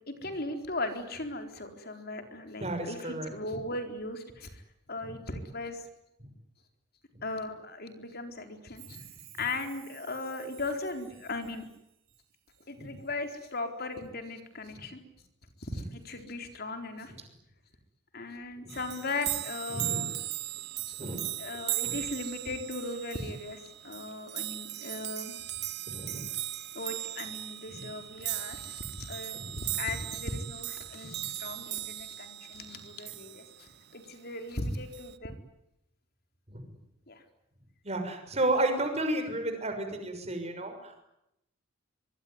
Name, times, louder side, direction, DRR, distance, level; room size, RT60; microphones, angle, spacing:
voice 1, 0.1-4.6 4.9-5.8 7.2-9.0 9.4-11.7 12.7-15.0 15.6-17.1 18.1-20.1 21.4-25.3 26.7-29.4 29.7-35.3 37.1-37.2, left 2 dB, 50° left, 6 dB, 4.2 m, -38 dB
voice 2, 2.6-3.3 8.9-9.0 12.8-12.9 18.6-18.7 19.7-20.1 21.0-21.2 21.8-22.0 25.9-26.3 27.7-27.8 29.3-29.6 31.0-31.2 36.5-36.7 37.8-41.0, right 1 dB, 30° right, 6 dB, 6.2 m, -32 dB
Chime, 8.8-12.7 13.0-13.6 13.9-14.0, right 14 dB, 85° right, 5.3 m, -54 dB
sound 1, 18.7-33.7 34.9-35.2, right 15 dB, 55° right, 0.9 m, -38 dB
24.5 x 23.5 x 9.7 m, 0.83 s
head